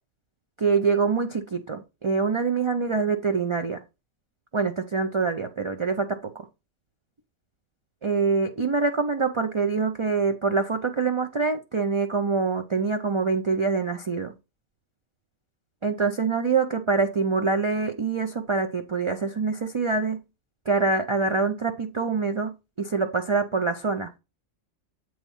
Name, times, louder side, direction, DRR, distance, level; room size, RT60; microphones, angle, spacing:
voice 1, 0.6-3.8 4.5-6.4 8.0-14.3 15.8-20.2 20.7-24.2, right 4 dB, 45° right, 0.4 m, -25 dB
8.1 x 3.2 x 5.4 m
omnidirectional pair, 1.3 m